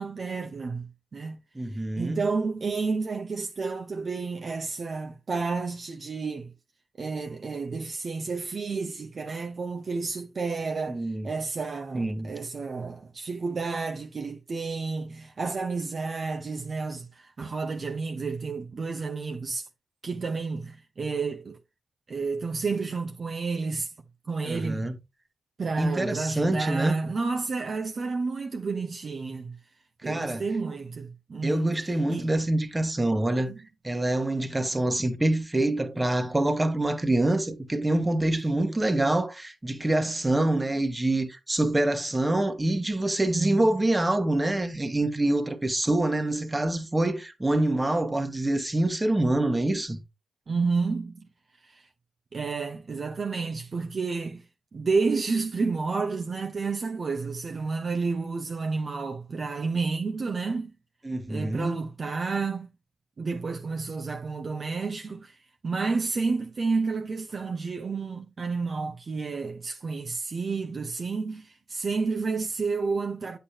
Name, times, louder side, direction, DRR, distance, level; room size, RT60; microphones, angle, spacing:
voice 1, 0.0-1.4 2.0-6.5 7.0-19.7 20.0-21.6 22.1-23.9 24.3-24.9 25.6-29.6 30.0-31.8 32.1-32.3 33.4-33.6 43.3-43.6 50.5-51.3 52.3-54.4 54.7-60.7 61.3-62.7 63.2-65.3 65.6-73.4, right 4 dB, 50° right, 1.2 m, -30 dB
voice 2, 1.6-2.3 10.9-11.3 11.9-12.3 24.4-25.0 25.8-27.0 30.0-30.4 31.4-33.5 33.8-50.0 61.0-61.7, right 1 dB, 20° right, 1.6 m, -26 dB
8.7 x 7.0 x 2.9 m
hypercardioid pair, 40°, 0 cm